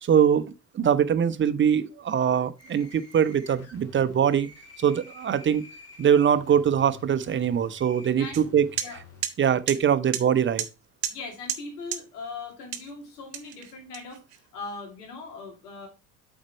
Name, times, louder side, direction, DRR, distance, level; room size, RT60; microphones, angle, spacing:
voice 1, 0.0-4.5 4.8-5.6 6.0-8.7 9.4-10.6, right 8 dB, 25° right, 0.6 m, -22 dB
sound 1, 2.6-9.2, left 4 dB, 30° left, 2.4 m, -49 dB
voice 2, 8.2-8.5 8.8-9.0 11.1-14.2 14.5-15.9, left 4 dB, 80° left, 2.4 m, -39 dB
sound 2, 8.3-8.4 8.8-8.9 9.2-9.3 9.7-9.8 10.1-10.2 10.6-10.7 11.0-11.2 11.5-11.6 11.9-12.0 12.7-12.9 13.3-14.4, right 10 dB, 85° right, 0.8 m, -31 dB
7.4 x 4.5 x 4.3 m
hypercardioid pair, 65°, 46 cm